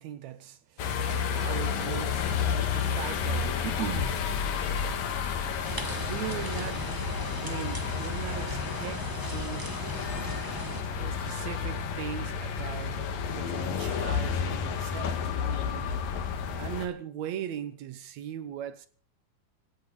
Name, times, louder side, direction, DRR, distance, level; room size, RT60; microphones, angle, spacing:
voice 1, 0.0-4.3 6.0-6.9 7.4-9.7 11.0-16.0 16.6-18.9, right 10 dB, 65° right, 2.0 m, -39 dB
sound 1, 0.8-16.9, left 6 dB, 80° left, 3.3 m, -31 dB
sound 2, 5.6-10.8, right 1 dB, 25° right, 0.4 m, -38 dB
17.0 x 16.0 x 4.9 m
omnidirectional pair, 3.9 m